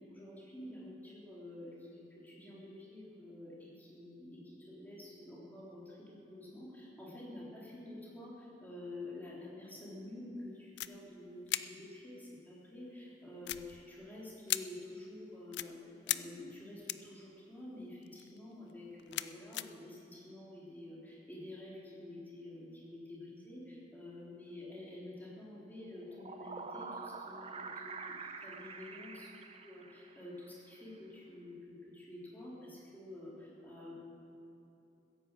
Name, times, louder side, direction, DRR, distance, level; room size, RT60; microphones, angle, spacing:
voice 1, 0.0-27.9 28.2-34.0, left 1 dB, 10° left, -6 dB, 3.7 m, -49 dB
sound 1, 10.8-10.9 11.4-11.6 13.4-14.0 14.5-14.6 15.5-15.7 16.1-16.2 16.9-17.1 18.0-18.4 18.7-19.7, left 14 dB, 65° left, 0.4 m, -36 dB
sound 2, 25.9-30.4, right 4 dB, 35° right, 0.8 m, -46 dB
16.0 x 10.0 x 7.5 m, 2.8 s
head